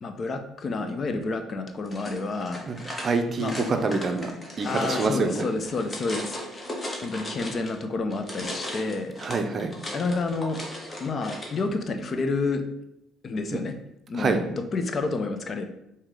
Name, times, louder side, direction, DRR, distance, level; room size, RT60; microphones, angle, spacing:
voice 1, 0.0-2.7 3.4-3.7 4.6-6.7 7.0-9.2 9.9-10.6 11.0-12.6 13.2-13.7 14.1-15.6, left 3 dB, 45° left, 6 dB, 0.5 m, -29 dB
sound 1, 1.9-7.8 8.1-11.6, left 1 dB, 25° left, 1.0 m, -37 dB
voice 2, 3.0-4.3 4.6-5.5 9.2-9.7 13.5-13.6 14.1-14.4, right 3 dB, 40° right, 6 dB, 0.5 m, -26 dB
4.7 x 2.8 x 3.7 m, 0.83 s
cardioid pair, 90°, 0 cm